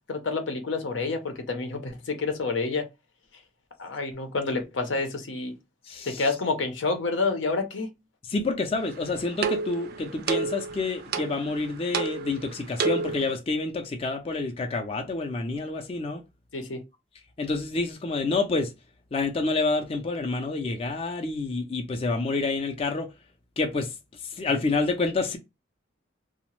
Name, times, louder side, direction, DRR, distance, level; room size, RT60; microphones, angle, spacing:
voice 1, 0.1-2.9 3.8-5.5 6.0-7.9 16.5-16.8, left 3 dB, 80° left, 0.7 m, -28 dB
voice 2, 5.9-6.2 8.3-16.2 17.4-18.7 19.1-23.1 23.6-23.9 24.2-25.4, left 3 dB, 30° left, 0.4 m, -28 dB
sound 1, 8.8-13.4, right 4 dB, 55° right, 0.4 m, -31 dB
2.8 x 2.1 x 3.0 m
head